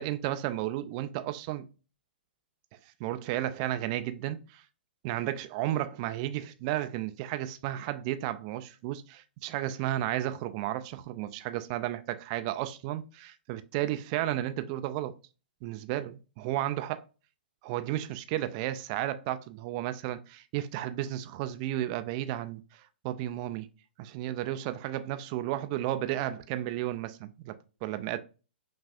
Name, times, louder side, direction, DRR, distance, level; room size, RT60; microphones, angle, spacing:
voice 1, 0.0-1.7 3.0-4.6 5.0-15.1 15.6-17.0 17.6-22.6 23.0-23.7 24.0-28.2, right 13 dB, 35° right, 0.4 m, -33 dB
5.4 x 2.5 x 2.4 m
figure-of-eight pair, 115°, 6 cm